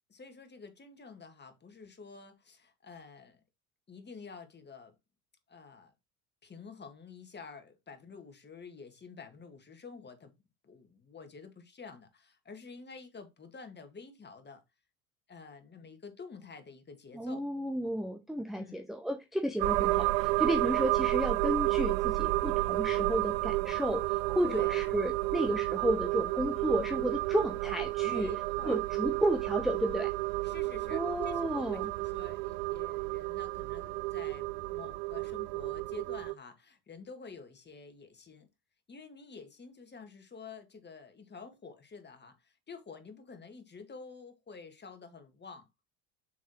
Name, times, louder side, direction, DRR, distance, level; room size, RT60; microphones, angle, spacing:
voice 1, 0.1-3.4 3.9-4.9 5.5-5.9 6.4-10.3 10.6-14.6 15.3-17.4 18.6-18.8 24.4-24.8 28.0-28.8 30.4-38.5 38.9-45.7, left 5 dB, 25° left, 1.9 m, -49 dB
voice 2, 17.1-28.3 28.6-30.1 30.9-31.9, right 1 dB, ahead, 0.8 m, -32 dB
sound 1, 19.6-36.3, right 21 dB, 55° right, 0.5 m, -31 dB
7.1 x 6.1 x 3.1 m
figure-of-eight pair, 65°, 44 cm